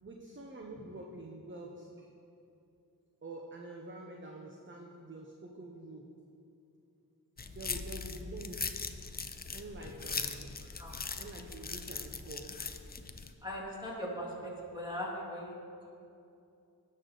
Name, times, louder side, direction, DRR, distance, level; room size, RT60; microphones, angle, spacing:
voice 1, 0.0-2.1 3.2-6.1 7.4-8.7 9.5-10.6 11.1-12.5, right 2 dB, 30° right, 0 dB, 0.9 m, -47 dB
sound 1, 7.4-13.3, left 4 dB, 25° left, 0.5 m, -40 dB
voice 2, 13.4-15.6, equal, 10° right, -5 dB, 2.6 m, -39 dB
17.0 x 6.5 x 3.9 m, 2.7 s
wide cardioid pair, 100°, 37 cm